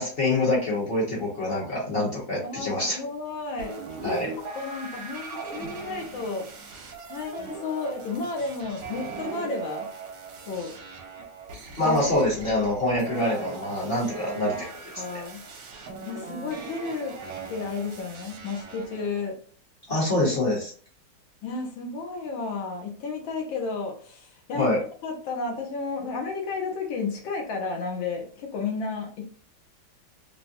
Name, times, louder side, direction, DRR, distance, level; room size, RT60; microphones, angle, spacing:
voice 1, 0.0-3.0 4.0-4.3 11.8-14.7 15.1-15.2 19.9-20.7 24.6-24.8, left 1 dB, 40° left, -5 dB, 0.9 m, -25 dB
voice 2, 2.4-4.2 4.5-6.5 7.1-9.9 10.4-10.7 11.8-12.0 14.5-14.6 15.0-15.4 16.1-17.1 17.5-19.4 21.4-24.7 25.0-29.3, left 4 dB, 75° left, 1 dB, 1.6 m, -32 dB
sound 1, 3.6-19.3, right 4 dB, 75° right, 1.5 m, -39 dB
3.9 x 2.1 x 2.6 m, 0.43 s
omnidirectional pair, 2.3 m